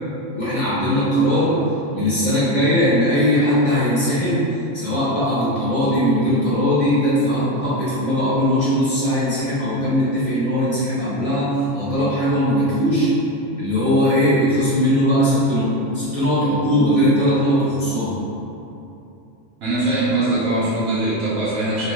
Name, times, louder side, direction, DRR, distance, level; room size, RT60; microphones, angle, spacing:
voice 1, 0.3-1.6 1.9-13.1 13.6-18.2, equal, 30° left, -11 dB, 0.9 m, -19 dB
voice 2, 19.6-21.9, right 2 dB, 85° right, -10 dB, 1.0 m, -22 dB
2.9 x 2.1 x 3.1 m, 2.8 s
omnidirectional pair, 1.3 m